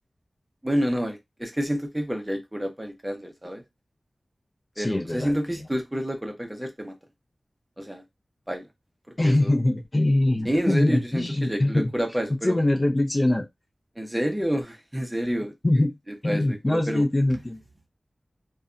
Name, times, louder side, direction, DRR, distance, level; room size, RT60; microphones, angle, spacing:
voice 1, 0.6-3.6 4.8-6.9 7.8-8.0 8.5-8.7 9.2-9.5 10.4-12.6 14.0-15.5 16.2-17.0, equal, 10° right, 0.6 m, -28 dB
voice 2, 4.8-5.4 9.2-11.9 12.4-13.5 15.6-15.9 16.2-17.6, left 1 dB, 30° left, 0.4 m, -23 dB
2.6 x 2.2 x 2.4 m
wide cardioid pair, 85°, 0 cm